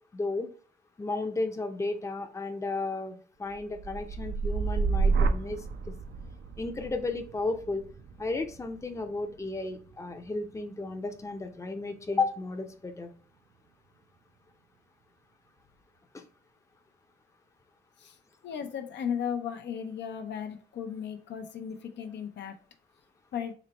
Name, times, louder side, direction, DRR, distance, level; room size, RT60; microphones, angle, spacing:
voice 1, 0.1-0.5 1.0-5.9 6.6-7.8 8.2-13.1 16.1-16.2, left 3 dB, 15° left, 6 dB, 0.5 m, -33 dB
sound 1, 3.5-11.6 12.0-12.5, right 4 dB, 75° right, 0.5 m, -32 dB
voice 2, 18.4-22.6 23.3-23.5, left 8 dB, 80° left, 6 dB, 0.6 m, -35 dB
4.0 x 2.1 x 4.0 m, 0.41 s
cardioid pair, 90°, 18 cm